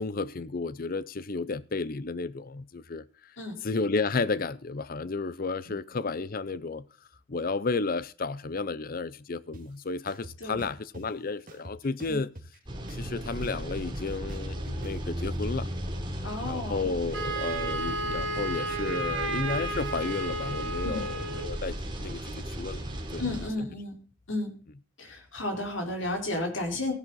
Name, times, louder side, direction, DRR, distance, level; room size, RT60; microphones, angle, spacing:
voice 1, 0.0-3.3 3.6-6.8 7.3-12.3 12.9-15.7 16.5-22.8 23.1-23.3, left 3 dB, 45° left, 0.6 m, -32 dB
sound 1, 9.5-9.6 10.1-11.0 11.5-12.6 12.9-15.3, right 1 dB, 45° right, 2.6 m, -45 dB
sound 2, 12.7-23.5, right 1 dB, 25° right, 3.4 m, -36 dB
voice 2, 16.2-16.8 20.8-21.0 23.2-24.0 24.3-24.5 25.0-26.9, left 2 dB, 70° left, 4.8 m, -32 dB
Wind instrument woodwind instrument, 17.1-21.5, right 2 dB, 70° right, 3.9 m, -33 dB
16.5 x 11.0 x 4.1 m
head